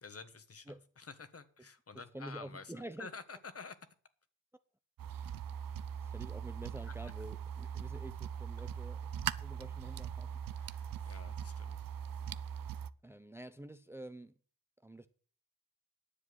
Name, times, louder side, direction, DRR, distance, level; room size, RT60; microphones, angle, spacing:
voice 1, 0.0-3.8 6.9-7.0 10.5-11.9, left 4 dB, 40° left, 1.4 m, -50 dB
voice 2, 2.1-3.1 6.0-9.0 9.4-10.4 13.0-14.3 14.8-15.1, right 1 dB, 5° right, 0.7 m, -48 dB
sound 1, 5.0-12.9, right 8 dB, 65° right, 0.6 m, -41 dB
10.0 x 7.3 x 7.9 m
cardioid pair, 80°, 36 cm